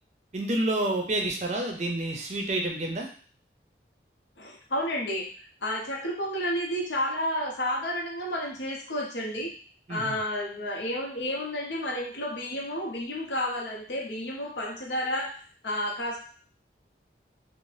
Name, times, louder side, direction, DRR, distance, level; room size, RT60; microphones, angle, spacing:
voice 1, 0.3-3.1 9.9-10.2, right 1 dB, 40° right, 2 dB, 0.5 m, -29 dB
voice 2, 4.4-5.3 5.6-9.5 9.9-15.3 15.6-16.2, left 1 dB, 85° left, -2 dB, 0.7 m, -31 dB
2.6 x 2.0 x 3.2 m, 0.43 s
head